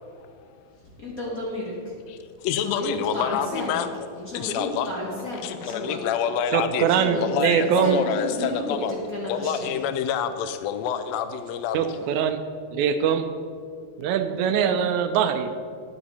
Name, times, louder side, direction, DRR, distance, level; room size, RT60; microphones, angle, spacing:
voice 1, 1.0-2.0 2.6-3.8 4.2-6.0 6.8-8.8 9.1-9.8, left 1 dB, 45° left, -4 dB, 1.1 m, -32 dB
voice 2, 2.4-3.9 4.3-4.9 5.4-6.9 7.2-8.9 9.3-11.9, left 8 dB, 80° left, 10 dB, 1.6 m, -27 dB
voice 3, 6.5-8.0 11.7-12.4 12.7-13.3 14.0-15.5, right 8 dB, 80° right, 8 dB, 1.8 m, -22 dB
9.9 x 8.6 x 4.2 m, 2.3 s
omnidirectional pair, 3.4 m